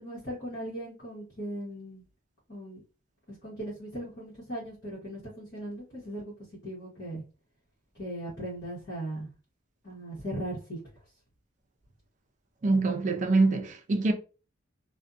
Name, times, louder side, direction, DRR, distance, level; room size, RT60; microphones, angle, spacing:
voice 1, 0.0-2.0 2.5-2.8 3.4-6.3 6.6-7.2 8.0-9.3 9.8-10.8, right 1 dB, 50° left, 1.1 m, -38 dB
voice 2, 12.6-14.1, right 3 dB, 40° right, 0.4 m, -24 dB
2.5 x 2.2 x 2.4 m
head